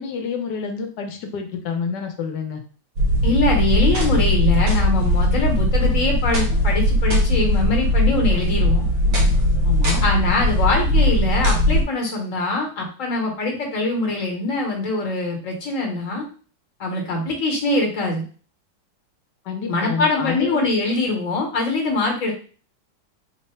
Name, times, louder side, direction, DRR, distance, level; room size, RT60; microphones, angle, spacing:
voice 1, 0.0-2.6 9.6-10.1 19.4-20.7, left 6 dB, 70° left, 5 dB, 1.2 m, -28 dB
sound 1, 3.0-11.8, left 1 dB, 80° right, 1.8 m, -19 dB
voice 2, 3.2-8.9 10.0-16.2 16.8-18.2 19.7-22.3, left 2 dB, 50° left, 0 dB, 1.1 m, -23 dB
3.7 x 2.1 x 4.1 m, 0.40 s
omnidirectional pair, 2.2 m